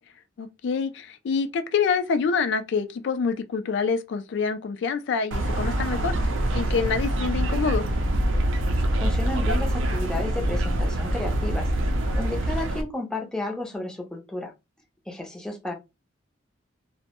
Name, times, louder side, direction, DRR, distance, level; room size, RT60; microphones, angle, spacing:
voice 1, 0.4-6.3 6.5-7.9, left 5 dB, 65° left, 0.3 m, -26 dB
sound 1, 5.3-12.8, right 1 dB, 75° right, 0.4 m, -25 dB
voice 2, 9.0-11.7 12.1-14.5 15.1-15.7, left 2 dB, 5° left, 0.5 m, -32 dB
2.1 x 2.0 x 2.8 m
head